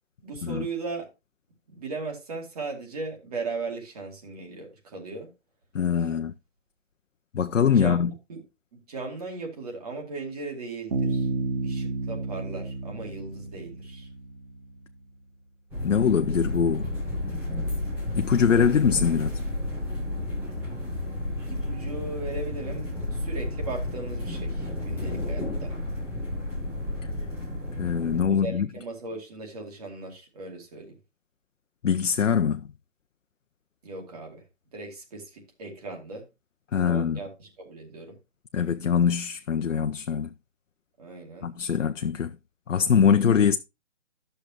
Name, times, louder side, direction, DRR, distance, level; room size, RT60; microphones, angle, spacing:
voice 1, 0.2-1.1 1.7-5.3 6.0-6.1 7.7-8.4 8.9-11.3 11.6-14.1 21.5-25.7 28.3-30.9 33.8-34.4 34.7-36.2 36.7-38.2 41.0-41.5, right 3 dB, 30° right, 2.4 m, -37 dB
voice 2, 5.7-6.3 7.3-8.1 15.8-16.9 18.1-19.3 27.8-28.7 31.8-32.7 36.7-37.2 38.5-40.3 41.4-42.4 42.7-43.6, left 7 dB, 85° left, 0.8 m, -23 dB
Bass guitar, 10.9-14.6, right 3 dB, 50° right, 2.5 m, -31 dB
sound 1, 15.7-28.2, left 1 dB, 5° right, 1.1 m, -31 dB
11.5 x 6.6 x 3.0 m
hypercardioid pair, 165°, 37 cm